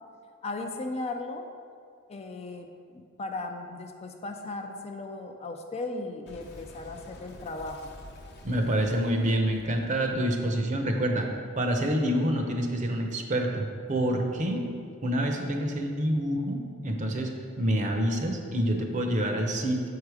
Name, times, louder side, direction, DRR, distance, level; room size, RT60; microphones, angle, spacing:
voice 1, 0.4-1.4 2.1-2.7 2.9-7.9, left 2 dB, 30° left, 4 dB, 0.4 m, -36 dB
Boom, 6.3-11.5, left 1 dB, 55° left, 0.9 m, -49 dB
voice 2, 8.4-11.3 11.6-14.7 15.0-19.9, right 1 dB, 35° right, 3 dB, 0.7 m, -27 dB
7.3 x 4.8 x 4.8 m, 2.3 s
head